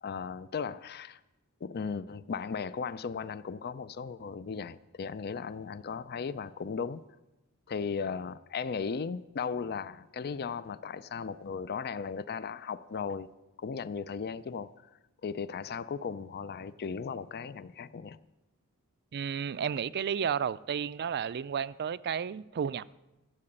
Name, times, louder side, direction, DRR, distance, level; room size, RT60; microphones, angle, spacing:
voice 1, 0.0-1.2 1.6-7.0 7.7-13.3 13.6-14.9 15.2-18.2, left 5 dB, 45° left, 0.4 m, -36 dB
voice 2, 19.1-22.8, right 7 dB, 50° right, 0.4 m, -32 dB
14.0 x 7.8 x 8.7 m
head